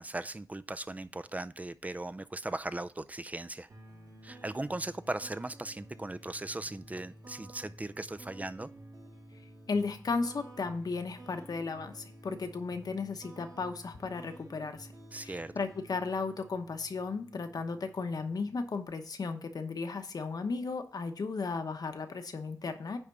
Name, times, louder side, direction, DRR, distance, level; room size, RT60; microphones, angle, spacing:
voice 1, 0.0-3.7 4.2-8.7 15.1-15.5, right 2 dB, 25° right, 12 dB, 0.4 m, -38 dB
sound 1, 3.7-18.8, right 1 dB, 80° right, 3.9 m, -52 dB
voice 2, 9.7-14.9 15.2-23.0, left 4 dB, 80° left, 7 dB, 1.0 m, -35 dB
10.0 x 3.6 x 6.8 m, 0.41 s
wide cardioid pair, 105°, 6 cm